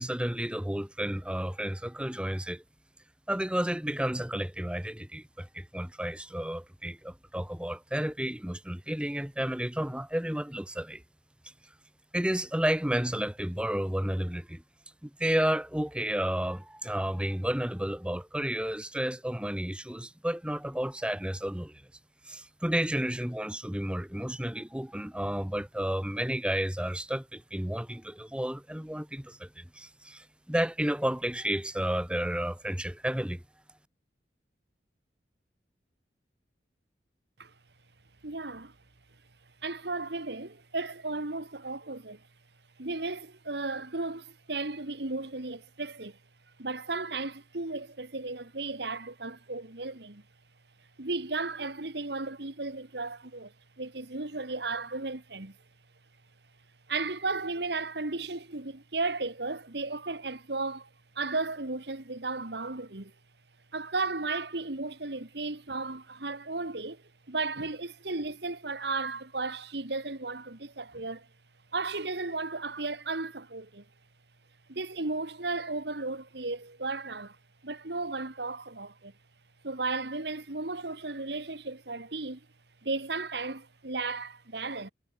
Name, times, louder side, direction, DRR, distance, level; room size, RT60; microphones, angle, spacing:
voice 1, 0.0-2.6 3.3-11.0 12.1-14.6 15.0-21.8 22.3-33.4, equal, 5° right, 1.1 m, -31 dB
voice 2, 38.2-38.7 39.6-42.2 42.8-46.2 46.6-50.2 51.0-55.6 56.9-60.9 61.2-63.1 63.7-71.3 71.7-73.8 74.7-77.4 77.6-79.1 79.6-82.4 82.8-84.9, right 3 dB, 65° right, 1.9 m, -35 dB
head